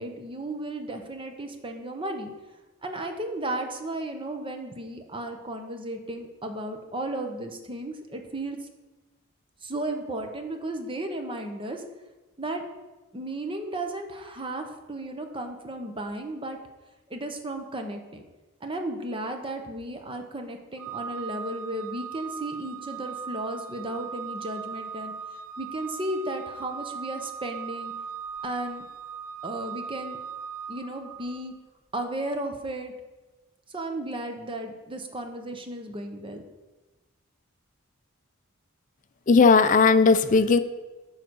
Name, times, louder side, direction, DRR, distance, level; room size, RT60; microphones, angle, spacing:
voice 1, 0.0-2.3 2.8-8.6 9.6-11.8 12.4-12.6 13.1-16.6 17.1-18.2 18.6-25.1 25.6-27.9 28.4-28.8 29.4-30.2 30.7-31.5 31.9-32.9 33.7-36.4, right 1 dB, 25° right, 5 dB, 0.9 m, -34 dB
Organ, 20.8-31.5, right 6 dB, 90° right, 1.0 m, -38 dB
voice 2, 39.3-40.6, left 4 dB, 40° left, 11 dB, 0.5 m, -17 dB
9.8 x 4.0 x 6.2 m, 1.2 s
head